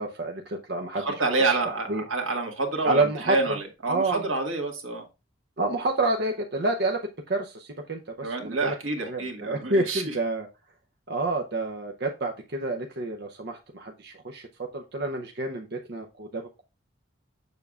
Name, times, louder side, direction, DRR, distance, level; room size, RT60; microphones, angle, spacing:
voice 1, 0.0-2.0 2.8-3.6 3.9-4.3 5.6-8.7 9.1-10.5 11.1-16.6, right 2 dB, 55° right, 3 dB, 0.6 m, -29 dB
voice 2, 0.9-5.0 8.2-10.0, right 3 dB, 85° right, 2 dB, 1.6 m, -28 dB
6.9 x 6.7 x 2.3 m, 0.28 s
head